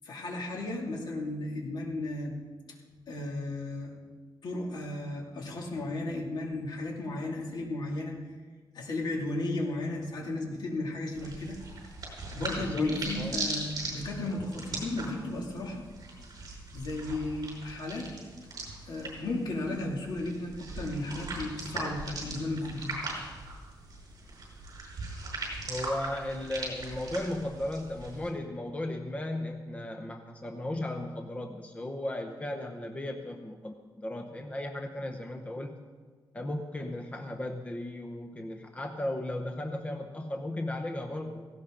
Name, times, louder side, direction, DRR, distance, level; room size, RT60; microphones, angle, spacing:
voice 1, 0.0-2.3 3.1-3.9 4.4-8.3 8.7-11.6 12.3-15.8 16.7-18.1 18.8-23.0, left 2 dB, 60° left, -1 dB, 2.7 m, -34 dB
sound 1, 11.2-28.3, right 2 dB, 50° right, 5.6 m, -40 dB
voice 2, 12.6-13.4 25.7-35.7 36.3-41.5, left 1 dB, 15° left, 4 dB, 0.8 m, -36 dB
17.5 x 16.5 x 3.9 m, 1.5 s
wide cardioid pair, 145°, 8 cm